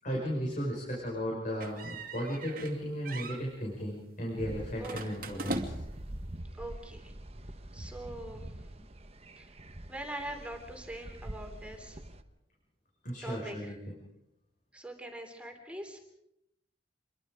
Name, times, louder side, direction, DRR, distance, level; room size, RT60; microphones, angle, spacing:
voice 1, 0.0-5.7 13.0-14.0, equal, 45° left, -3 dB, 5.5 m, -35 dB
sound 1, 1.6-2.8 3.0-3.4 4.8-6.0, right 2 dB, 50° right, 2.3 m, -39 dB
sound 2, 4.4-12.2, right 1 dB, 35° right, 1.2 m, -45 dB
voice 2, 6.6-7.0 7.7-8.4 9.9-11.9 13.2-13.7 14.7-16.0, right 1 dB, 5° right, 3 dB, 3.1 m, -42 dB
27.0 x 23.0 x 5.0 m, 0.82 s
head